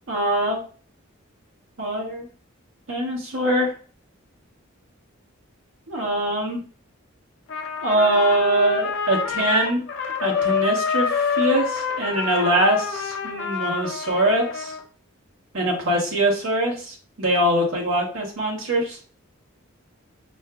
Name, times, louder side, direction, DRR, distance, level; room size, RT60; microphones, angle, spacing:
voice 1, 0.1-0.6 1.8-2.3 2.9-3.7 5.9-6.6 7.8-9.8 10.2-14.7 15.5-19.0, right 1 dB, 65° right, -2 dB, 0.9 m, -23 dB
Trumpet, 7.5-14.8, left 6 dB, 60° left, 0.6 m, -27 dB
5.6 x 2.5 x 2.3 m, 0.40 s
head